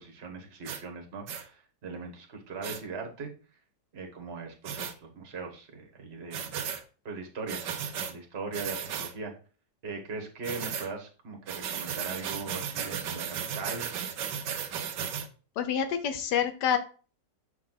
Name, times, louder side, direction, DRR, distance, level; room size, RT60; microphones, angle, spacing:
voice 1, 0.0-3.3 3.9-6.5 7.0-7.6 8.1-9.3 9.8-13.9, right 4 dB, 40° right, 2 dB, 1.5 m, -40 dB
sound 1, 0.6-0.8 1.3-1.4 2.6-2.8 4.6-4.9 6.3-6.8 7.5-8.1 8.5-9.1 10.4-10.9 11.5-15.3, right 8 dB, 80° right, 1.5 m, -35 dB
voice 2, 15.6-16.8, left 8 dB, 75° left, 9 dB, 1.5 m, -27 dB
7.2 x 4.7 x 3.8 m, 0.37 s
omnidirectional pair, 1.9 m